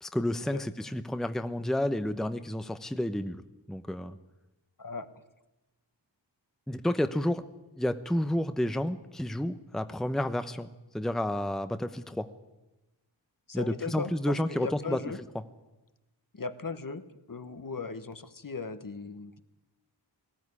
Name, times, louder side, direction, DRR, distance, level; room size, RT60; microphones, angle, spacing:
voice 1, 0.0-3.4 3.7-4.2 6.7-7.4 7.8-12.3 13.5-15.0, left 1 dB, ahead, 10 dB, 0.8 m, -30 dB
voice 2, 13.5-15.2 16.3-17.0 17.3-19.4, left 4 dB, 45° left, 10 dB, 1.2 m, -38 dB
19.0 x 15.0 x 9.8 m, 1.0 s
wide cardioid pair, 65°, 45 cm